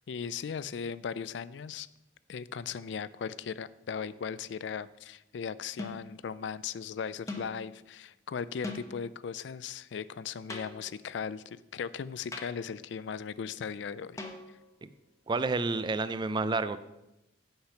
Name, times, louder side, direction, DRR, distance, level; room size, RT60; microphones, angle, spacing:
voice 1, 0.1-1.9 2.3-14.2, left 6 dB, 70° left, 17 dB, 0.4 m, -38 dB
sound 1, 4.0-4.3 5.8-6.2 7.3-7.6 8.6-9.1 10.5-11.1 12.3-12.8 14.2-14.8, left 2 dB, 15° left, 1.0 m, -42 dB
voice 2, 15.3-16.8, right 3 dB, 25° right, 13 dB, 0.4 m, -30 dB
8.6 x 5.9 x 5.8 m, 0.93 s
head